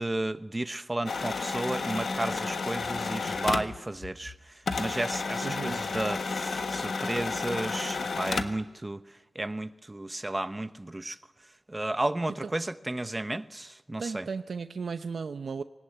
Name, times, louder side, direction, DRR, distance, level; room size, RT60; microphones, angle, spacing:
voice 1, 0.0-4.3 4.8-9.0 9.3-11.2 11.7-14.3, right 1 dB, 20° right, 0.9 m, -33 dB
sound 1, 1.1-4.4 4.7-8.7, left 4 dB, 65° left, 1.4 m, -32 dB
voice 2, 5.4-5.8 12.4-12.5 14.0-15.6, right 5 dB, 65° right, 0.8 m, -35 dB
21.0 x 18.5 x 9.9 m
wide cardioid pair, 105°, 0 cm